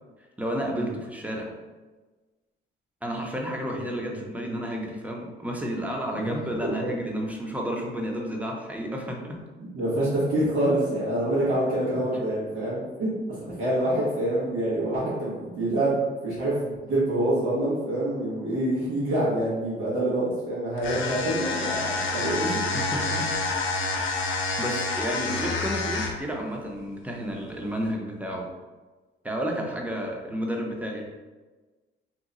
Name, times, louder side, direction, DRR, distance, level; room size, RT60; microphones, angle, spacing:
voice 1, 0.4-1.5 3.0-9.4 22.7-23.6 24.0-28.5 29.2-31.1, equal, 5° right, 0 dB, 0.6 m, -31 dB
voice 2, 9.6-13.1 13.5-22.6, right 1 dB, 85° right, -9 dB, 1.2 m, -26 dB
sound 1, 20.8-26.3, left 3 dB, 80° left, 0.6 m, -28 dB
2.8 x 2.2 x 3.8 m, 1.3 s
cardioid pair, 90°, 20 cm